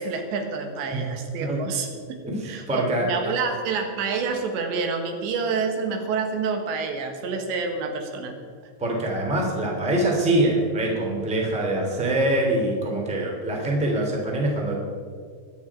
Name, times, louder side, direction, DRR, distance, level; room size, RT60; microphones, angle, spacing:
voice 1, 0.0-1.9 2.5-8.3, right 4 dB, 80° right, 4 dB, 3.7 m, -28 dB
voice 2, 2.2-3.0 8.8-14.7, right 1 dB, ahead, -1 dB, 1.6 m, -24 dB
23.0 x 8.7 x 4.8 m, 2.1 s
omnidirectional pair, 5.1 m